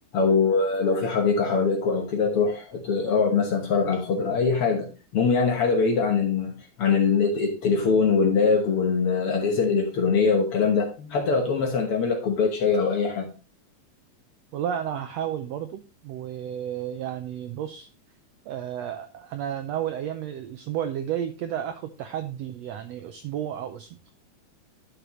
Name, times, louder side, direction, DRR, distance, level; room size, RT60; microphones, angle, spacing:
voice 1, 0.1-6.5 6.8-13.3, left 5 dB, 55° left, 1.7 m, -23 dB
voice 2, 14.5-17.9 18.5-24.1, right 10 dB, 85° right, 1.5 m, -32 dB
11.0 x 6.7 x 3.0 m
omnidirectional pair, 3.8 m